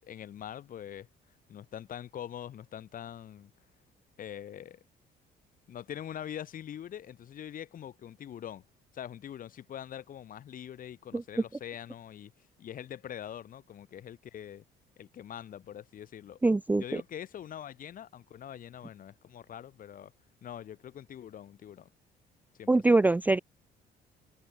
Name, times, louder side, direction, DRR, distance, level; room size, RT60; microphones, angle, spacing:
voice 1, 0.0-1.1 1.5-3.5 4.2-4.8 5.7-8.6 8.9-14.6 15.0-16.4 16.7-20.1 20.4-21.9 22.6-23.0, left 10 dB, 55° left, 6.9 m, -43 dB
voice 2, 16.4-16.8 22.7-23.4, right 2 dB, 10° right, 0.4 m, -23 dB
cardioid pair, 110°, 17 cm